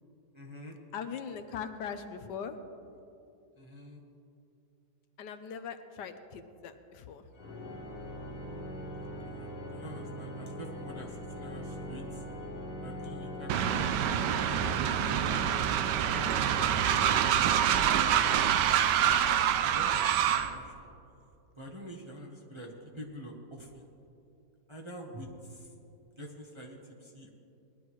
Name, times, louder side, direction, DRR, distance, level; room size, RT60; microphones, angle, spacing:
voice 1, 0.3-0.8 3.6-4.0 9.3-12.2 12.8-14.8 17.6-18.5 19.0-20.2 20.5-20.9 21.6-23.9 24.7-25.7 26.2-27.3, right 1 dB, 20° right, -2 dB, 0.9 m, -46 dB
voice 2, 0.9-2.6 5.2-7.3 16.7-17.1, left 7 dB, 75° left, 9 dB, 1.3 m, -41 dB
Organ, 7.3-18.1, equal, 50° left, 1.6 m, -41 dB
Train, 13.5-20.5, right 9 dB, 80° right, 1.2 m, -26 dB
20.0 x 11.5 x 3.1 m, 2.7 s
omnidirectional pair, 1.9 m